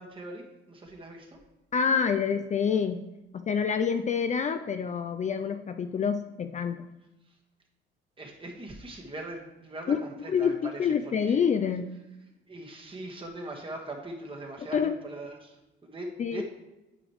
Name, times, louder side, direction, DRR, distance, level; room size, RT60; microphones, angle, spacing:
voice 1, 0.0-1.4 8.2-11.5 12.5-16.4, right 2 dB, 25° right, 0 dB, 1.5 m, -41 dB
voice 2, 1.7-3.1 3.3-6.9 9.9-10.0 10.3-11.8 14.7-14.9 16.2-16.4, left 6 dB, 35° left, 8 dB, 0.4 m, -27 dB
9.7 x 5.1 x 3.1 m, 1.0 s
cardioid pair, 90°, 20 cm